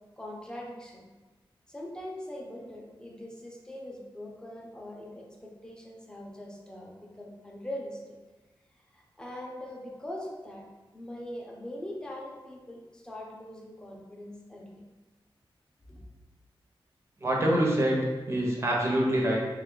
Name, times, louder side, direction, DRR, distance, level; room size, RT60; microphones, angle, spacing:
voice 1, 0.2-1.1 1.7-8.2 8.9-10.6 10.9-14.8 15.9-16.1, left 1 dB, 10° left, -2 dB, 0.6 m, -42 dB
voice 2, 17.2-19.4, right 1 dB, 30° right, -3 dB, 0.8 m, -25 dB
3.5 x 2.4 x 3.7 m, 1.2 s
wide cardioid pair, 115°, 9 cm